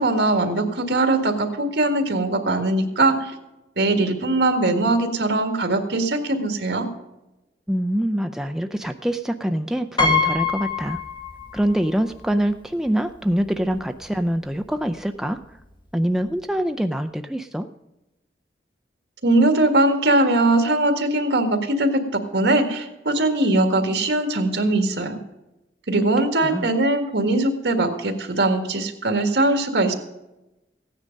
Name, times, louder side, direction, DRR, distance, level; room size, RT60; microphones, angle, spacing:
voice 1, 0.0-3.3 3.8-6.9 19.2-25.2 25.9-29.9, right 2 dB, 80° right, 6 dB, 1.8 m, -21 dB
voice 2, 7.7-11.0 11.5-15.4 15.9-17.7 26.2-26.7, equal, 5° right, 7 dB, 0.4 m, -24 dB
Piano, 10.0-11.8 12.1-12.2 13.4-13.5 13.8-14.0, left 4 dB, 25° left, 1.6 m, -24 dB
15.5 x 9.8 x 5.2 m, 0.98 s
head